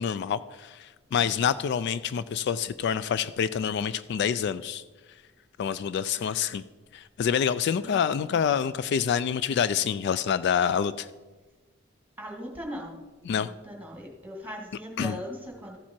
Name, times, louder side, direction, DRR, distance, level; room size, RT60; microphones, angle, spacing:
voice 1, 0.0-4.8 5.6-6.6 6.9-11.1 13.3-13.5 15.0-15.2, left 7 dB, 55° left, 15 dB, 0.3 m, -27 dB
voice 2, 7.8-8.4 12.2-13.0 13.3-15.8, equal, 10° right, 0 dB, 2.0 m, -40 dB
14.0 x 7.4 x 4.4 m, 1.3 s
head